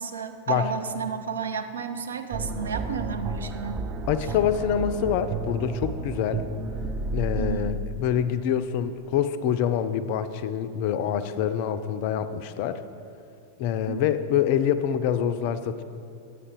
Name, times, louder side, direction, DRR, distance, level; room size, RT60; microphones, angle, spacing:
voice 1, 0.0-3.8 7.4-7.7 13.9-14.0, right 6 dB, 70° right, 8 dB, 0.5 m, -32 dB
sound 1, 2.3-7.5, right 3 dB, 25° right, 0.5 m, -32 dB
voice 2, 4.1-6.5 7.1-12.8 13.6-15.8, left 9 dB, 45° left, 12 dB, 0.4 m, -26 dB
9.7 x 8.3 x 3.6 m, 2.5 s
figure-of-eight pair, 90°, 0 cm